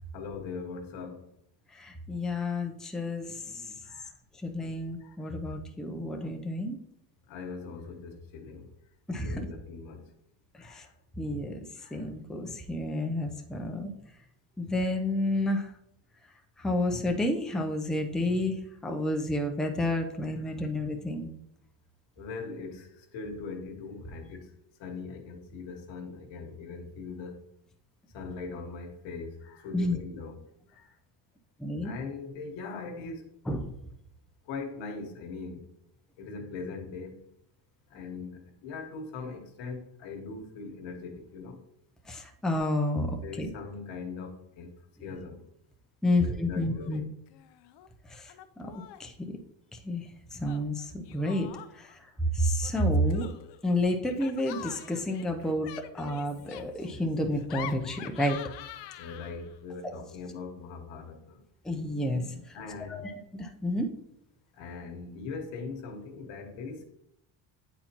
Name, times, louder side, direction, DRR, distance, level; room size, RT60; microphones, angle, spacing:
voice 1, 0.1-1.3 3.8-4.1 5.0-5.2 7.3-8.7 9.1-10.1 10.6-10.9 11.8-12.1 22.2-24.5 24.8-27.4 28.1-30.4 30.7-30.9 31.8-33.2 34.4-35.7 36.2-37.2 37.9-41.6 43.2-44.7 45.0-45.4 46.1-47.0 59.0-61.4 62.5-63.1 64.5-66.9, left 4 dB, 85° left, 1.3 m, -41 dB
voice 2, 1.7-3.8 4.3-6.8 9.1-9.5 10.5-10.9 11.2-11.6 11.9-13.9 14.6-15.7 16.6-21.3 29.7-30.0 31.6-31.9 33.5-33.8 42.0-43.5 46.0-47.0 48.1-48.7 49.0-49.4 49.7-51.5 51.7-52.1 52.3-53.3 53.6-58.4 59.8-59.9 61.6-62.6 62.9-63.9, left 1 dB, ahead, 0.5 m, -30 dB
Laughter, 46.6-47.0 47.3-47.9 48.3-49.1 50.4-52.0 52.6-59.6, left 12 dB, 70° left, 0.6 m, -45 dB
9.0 x 4.2 x 2.9 m
cardioid pair, 130°, 44 cm